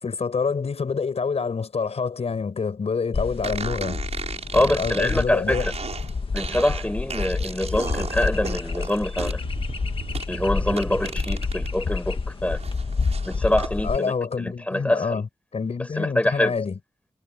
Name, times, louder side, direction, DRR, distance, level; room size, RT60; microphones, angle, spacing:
voice 1, 0.0-4.0 4.5-5.7 13.8-15.3 15.5-16.8, left 5 dB, 75° left, 6.9 m, -27 dB
sound 1, 3.1-14.0, left 4 dB, 55° left, 1.7 m, -29 dB
sound 2, 3.4-11.7 12.1-13.7, right 5 dB, 80° right, 6.2 m, -35 dB
voice 2, 4.5-5.7 6.3-9.4 10.3-12.6 13.2-15.2 15.8-16.6, left 1 dB, 10° left, 6.8 m, -25 dB
wide cardioid pair, 100°, 11 cm